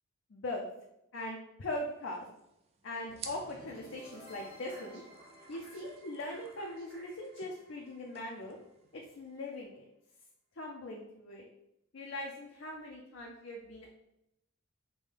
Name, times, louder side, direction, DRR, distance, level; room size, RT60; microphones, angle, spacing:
voice 1, 0.3-0.7 1.1-2.2 2.8-5.0 5.5-8.6 8.9-9.9 10.6-11.4 11.9-13.9, left 1 dB, 60° left, -1 dB, 0.5 m, -41 dB
sound 1, 1.7-9.4, right 6 dB, 30° right, 0.3 m, -55 dB
sound 2, 3.1-9.1, right 1 dB, 45° right, 0.9 m, -55 dB
5.3 x 2.2 x 3.2 m, 0.84 s
head